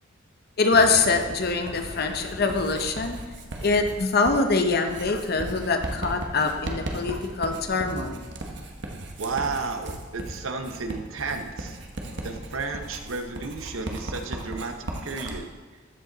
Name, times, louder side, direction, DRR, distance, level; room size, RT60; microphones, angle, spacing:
voice 1, 0.6-3.2 3.6-8.2, left 3 dB, 50° left, 6 dB, 0.7 m, -24 dB
Writing, 0.7-15.4, right 1 dB, 60° right, 1.1 m, -37 dB
voice 2, 9.2-11.8 12.2-14.7 15.0-15.4, right 4 dB, 80° right, 6 dB, 0.9 m, -32 dB
13.5 x 5.2 x 4.0 m, 1.3 s
head